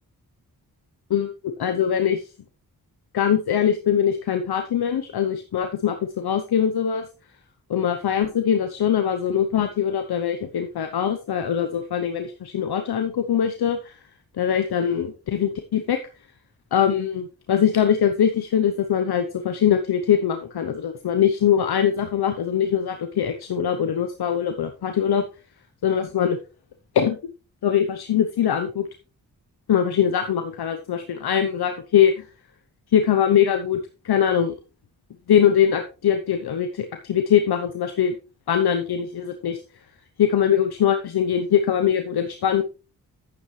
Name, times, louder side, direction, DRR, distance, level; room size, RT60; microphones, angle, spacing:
voice 1, 1.1-2.2 3.1-7.1 7.7-13.9 14.4-16.0 16.7-25.2 25.8-26.4 26.9-27.2 27.6-28.9 29.7-32.2 32.9-33.8 34.0-34.5 35.3-38.1 38.5-39.6 40.2-42.6, left 9 dB, 80° left, 7 dB, 0.9 m, -22 dB
10.0 x 8.6 x 3.2 m, 0.32 s
cardioid pair, 45°, 37 cm